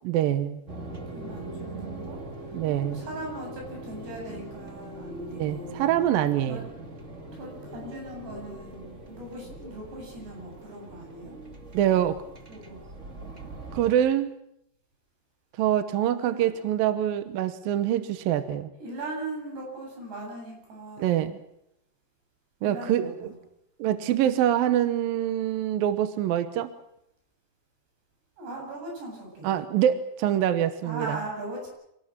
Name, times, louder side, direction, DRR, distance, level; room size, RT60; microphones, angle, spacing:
voice 1, 0.0-0.6 2.5-3.0 5.4-6.6 11.7-12.2 13.7-14.3 15.6-18.7 21.0-21.4 22.6-23.3 23.8-26.7 29.4-31.2, right 11 dB, 70° right, 11 dB, 2.6 m, -25 dB
sound 1, 0.7-13.9, right 2 dB, 25° right, 1.7 m, -41 dB
voice 2, 1.1-2.2 2.8-5.9 6.5-6.7 7.3-11.4 12.5-12.8 16.2-16.6 18.8-21.3 22.6-23.3 28.4-29.5 30.8-31.7, right 2 dB, 85° right, 0 dB, 10.0 m, -39 dB
26.5 x 18.5 x 7.5 m, 0.79 s
omnidirectional pair, 4.6 m